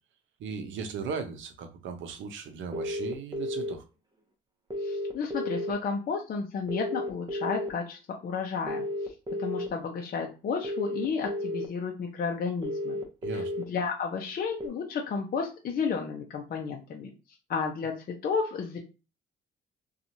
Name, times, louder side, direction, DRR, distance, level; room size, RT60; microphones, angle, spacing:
voice 1, 0.4-3.8 13.2-13.5, right 5 dB, 75° right, 0.6 m, -37 dB
sound 1, 2.7-3.7 4.7-5.7 6.7-7.7 8.7-9.7 10.6-11.7 12.6-13.6 14.6-14.7, equal, 20° right, 0.7 m, -32 dB
voice 2, 4.8-8.8 9.4-13.0 13.3-13.4 13.7-17.1 17.5-18.8, left 5 dB, 50° left, 0.6 m, -32 dB
2.9 x 2.3 x 2.6 m
cardioid pair, 90°, 20 cm